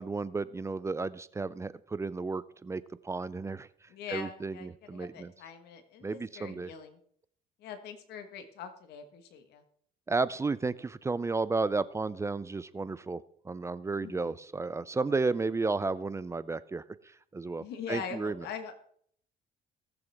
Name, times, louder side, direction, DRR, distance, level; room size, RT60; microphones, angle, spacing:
voice 1, 0.0-3.7 4.1-5.3 6.0-6.7 10.1-16.8 17.3-18.5, right 3 dB, 15° right, 17 dB, 0.4 m, -33 dB
voice 2, 3.9-7.0 7.6-9.6 13.9-14.4 17.6-18.7, left 6 dB, 75° left, 7 dB, 1.4 m, -43 dB
19.0 x 6.9 x 3.5 m, 0.63 s
cardioid pair, 110°, 17 cm